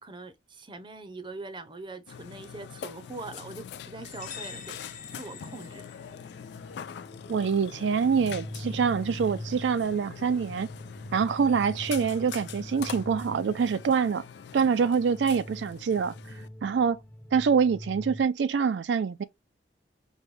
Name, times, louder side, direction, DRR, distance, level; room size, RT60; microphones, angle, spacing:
voice 1, 0.0-4.8 5.2-5.8, right 3 dB, 30° right, 0.6 m, -42 dB
Burping eructation, 2.1-16.5, left 8 dB, 70° left, 0.3 m, -44 dB
sound 1, 3.7-18.2, equal, 5° left, 0.8 m, -44 dB
sound 2, 4.0-6.6, left 6 dB, 45° left, 0.9 m, -45 dB
voice 2, 7.3-10.7 11.1-14.2 14.5-16.1 16.6-17.0 17.3-19.2, right 6 dB, 80° right, 0.4 m, -25 dB
5.3 x 2.2 x 3.2 m
head